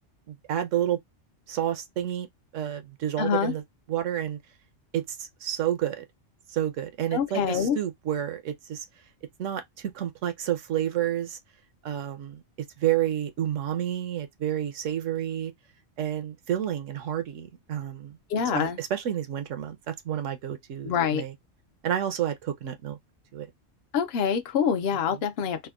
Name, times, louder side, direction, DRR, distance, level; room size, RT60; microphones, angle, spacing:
voice 1, 0.3-1.0 1.5-2.3 2.5-3.6 3.9-4.4 4.9-6.0 6.5-8.8 9.4-11.4 11.8-12.4 12.8-15.5 16.0-18.2 18.5-21.3 21.8-23.0 23.3-23.5 25.1-25.2, right 11 dB, 75° right, 1.0 m, -30 dB
voice 2, 3.2-3.5 7.1-7.8 18.3-18.8 20.8-21.2 23.9-25.7, left 7 dB, 60° left, 0.7 m, -25 dB
3.4 x 2.1 x 2.3 m
omnidirectional pair, 1.3 m